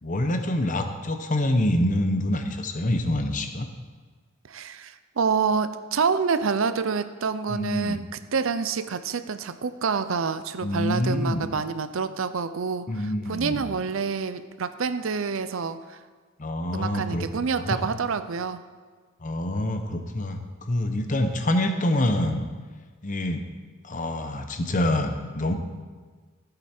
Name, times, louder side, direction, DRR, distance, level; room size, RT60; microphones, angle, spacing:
voice 1, 0.0-3.7 7.5-8.0 10.6-11.5 12.9-13.6 16.4-17.3 17.6-17.9 19.2-22.5 23.0-23.4 23.8-25.5, left 1 dB, 40° left, 6 dB, 0.9 m, -26 dB
voice 2, 4.5-16.0 16.7-18.6, right 5 dB, 70° right, 12 dB, 0.5 m, -27 dB
14.0 x 7.9 x 4.4 m, 1.5 s
head